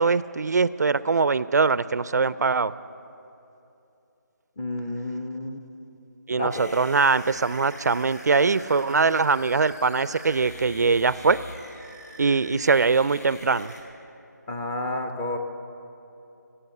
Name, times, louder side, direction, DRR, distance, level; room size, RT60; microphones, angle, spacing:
voice 1, 0.0-2.7 6.3-11.4 12.2-13.7, right 4 dB, 65° right, 17 dB, 0.4 m, -22 dB
voice 2, 4.6-5.6 6.4-6.7 14.5-15.4, left 1 dB, 10° left, 4 dB, 0.5 m, -30 dB
sound 1, 6.5-13.8, left 1 dB, 65° left, 2.8 m, -44 dB
16.5 x 7.9 x 8.3 m, 2.9 s
figure-of-eight pair, 160°, 10 cm